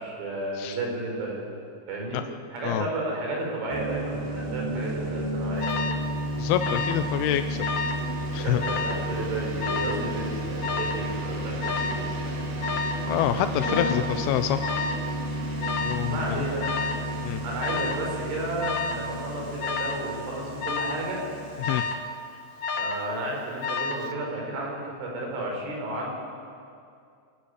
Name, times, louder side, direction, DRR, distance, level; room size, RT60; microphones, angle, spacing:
voice 1, 0.0-1.5 1.9-2.2 2.5-5.9 8.4-12.6 13.5-14.0 16.1-16.7 17.4-21.2 22.7-26.1, right 1 dB, 90° right, -1 dB, 7.5 m, -32 dB
sound 1, 3.7-22.0, right 1 dB, 60° right, 4.1 m, -32 dB
Alarm, 5.6-6.0 6.6-7.1 7.4-8.0 8.6-9.0 9.6-10.1 10.6-11.1 11.6-12.1 12.6-13.0 13.6-14.0 14.6-15.0 15.6-16.1 16.6-17.1 17.6-18.0 18.6-19.0 19.6-20.1 20.6-21.0 21.6-22.1 22.6-23.1 23.6-24.1, left 4 dB, 70° left, 1.8 m, -30 dB
voice 2, 6.4-7.7 8.3-8.6 13.0-14.6 15.8-16.4 17.2-17.4 21.6-21.8, left 11 dB, 85° left, 9 dB, 2.2 m, -26 dB
26.5 x 15.0 x 9.7 m, 2.4 s
omnidirectional pair, 5.4 m